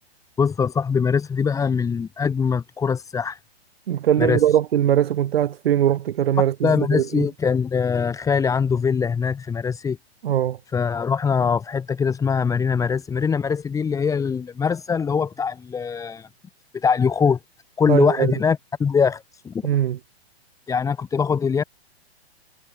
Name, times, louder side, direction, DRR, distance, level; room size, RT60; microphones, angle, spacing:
voice 1, 0.4-3.4 4.2-4.4 6.6-10.0 10.7-16.3 16.7-17.4 17.8-19.6 20.7-21.6, left 6 dB, 10° left, 1.0 m, -22 dB
voice 2, 3.9-7.3 10.2-10.6 17.9-18.3 19.6-20.0, right 11 dB, 65° right, 1.0 m, -21 dB
hypercardioid pair, 120°, 32 cm